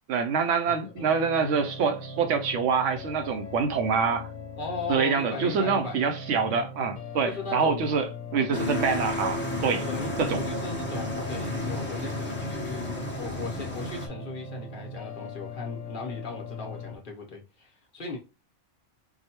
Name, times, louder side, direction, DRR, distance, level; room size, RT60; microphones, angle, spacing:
voice 1, 0.1-4.3 4.9-8.1 8.3-9.9 10.2-10.4, right 5 dB, 80° right, 1.0 m, -26 dB
sound 1, 1.0-17.0, left 2 dB, 85° left, 1.1 m, -40 dB
voice 2, 4.6-6.0 7.2-7.9 9.9-18.2, left 3 dB, 45° left, 1.0 m, -37 dB
sound 2, 8.5-14.1, left 2 dB, 10° left, 0.7 m, -32 dB
4.8 x 2.3 x 2.9 m
omnidirectional pair, 1.3 m